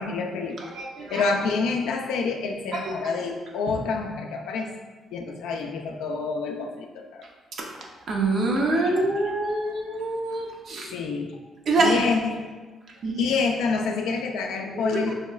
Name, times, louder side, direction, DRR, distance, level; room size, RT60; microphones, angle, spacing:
voice 1, 0.0-0.6 1.1-4.7 5.1-7.3 8.7-9.0 9.2-9.8 10.8-11.3 11.8-12.5 13.2-15.1, left 4 dB, 90° left, 2 dB, 0.3 m, -28 dB
voice 2, 0.6-1.3 2.8-2.9 7.6-7.7 8.1-10.9 11.7-12.0 13.0-13.3 14.8-15.0, right 2 dB, 60° right, -1 dB, 0.5 m, -25 dB
3.0 x 2.8 x 2.3 m, 1.3 s
cardioid pair, 90°, 0 cm